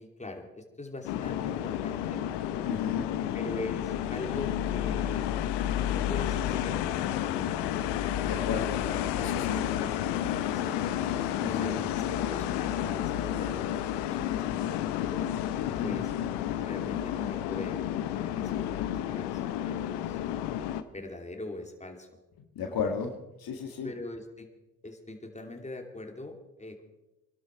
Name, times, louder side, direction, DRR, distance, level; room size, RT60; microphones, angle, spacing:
voice 1, 0.0-2.2 3.3-5.3 5.8-7.5 8.8-9.3 9.7-10.8 11.5-13.7 14.1-15.2 15.8-16.1 16.6-17.8 18.1-20.2 20.9-22.2 22.6-22.8 23.8-24.5 24.8-26.8, left 2 dB, 15° left, 3 dB, 2.9 m, -42 dB
sound 1, 1.0-20.8, left 11 dB, 85° left, 0.9 m, -31 dB
voice 2, 2.6-3.1 8.3-8.8 9.2-9.6 11.4-11.7 15.6-16.0 22.6-23.1 23.4-23.9, left 6 dB, 65° left, 4 dB, 1.9 m, -33 dB
21.5 x 12.0 x 4.6 m, 0.97 s
hypercardioid pair, 50°, 39 cm